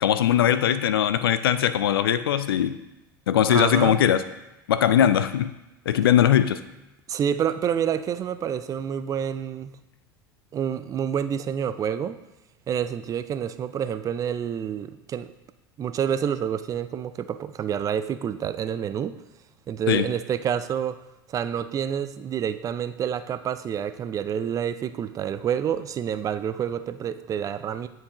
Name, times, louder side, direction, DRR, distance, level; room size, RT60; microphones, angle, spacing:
voice 1, 0.0-2.8 3.3-4.2 4.7-5.5 5.9-6.6 19.9-20.1, left 10 dB, 75° left, 13 dB, 0.4 m, -20 dB
voice 2, 3.5-4.0 7.1-9.7 10.5-12.2 12.7-15.3 15.8-19.2 19.7-21.0 21.3-27.9, right 8 dB, 25° right, 12 dB, 0.4 m, -28 dB
9.4 x 4.6 x 2.9 m, 1.0 s
figure-of-eight pair, 75°, 12 cm